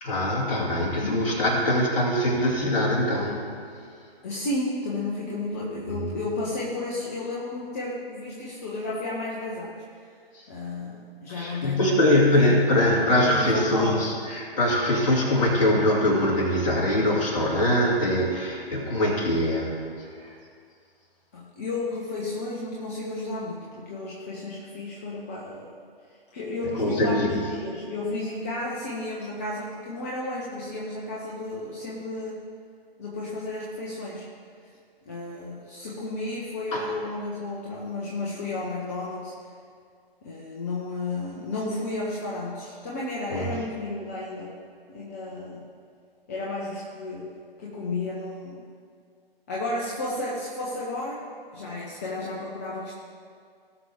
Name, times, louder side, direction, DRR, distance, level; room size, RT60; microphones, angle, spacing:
voice 1, 0.0-3.4 5.9-6.1 10.4-10.5 11.3-19.7 20.2-20.3 26.8-27.4 36.7-36.8 43.3-43.5, left 1 dB, 35° left, -4 dB, 2.5 m, -23 dB
voice 2, 4.2-9.8 10.5-12.6 13.3-14.1 21.3-25.7 26.3-32.4 33.0-34.3 35.0-39.3 40.2-44.6 44.9-45.7 46.3-47.3 47.6-48.6 49.5-51.2 51.5-52.9, left 2 dB, 15° left, -4 dB, 0.6 m, -32 dB
17.5 x 6.0 x 3.5 m, 2.2 s
figure-of-eight pair, 140°, 30 cm